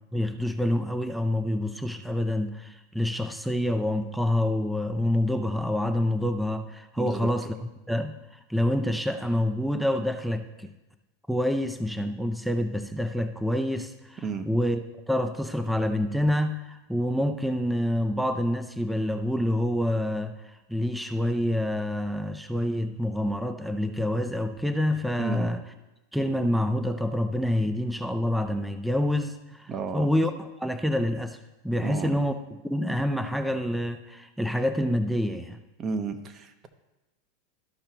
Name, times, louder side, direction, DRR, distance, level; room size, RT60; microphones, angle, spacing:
voice 1, 0.1-7.5 7.9-8.2 8.5-10.7 11.3-25.6 26.1-31.4 31.6-35.6, left 1 dB, ahead, 8 dB, 0.5 m, -27 dB
voice 2, 7.0-7.3 14.2-14.5 25.2-25.5 27.6-27.7 29.7-30.1 31.8-32.2 35.8-36.7, right 5 dB, 35° right, 8 dB, 1.0 m, -32 dB
13.5 x 5.6 x 3.0 m, 1.0 s
hypercardioid pair, 100°, 0 cm